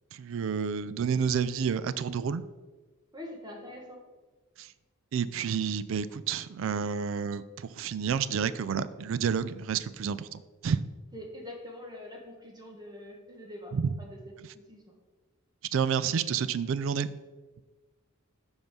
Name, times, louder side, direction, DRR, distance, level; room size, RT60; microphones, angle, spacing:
voice 1, 0.1-2.4 4.6-4.7 5.1-10.8 13.7-13.9 15.7-17.1, right 6 dB, 60° right, 15 dB, 0.3 m, -30 dB
voice 2, 3.1-4.0 11.1-13.7 14.0-15.0, left 1 dB, 20° right, 0 dB, 1.4 m, -44 dB
5.4 x 5.2 x 6.0 m, 1.3 s
head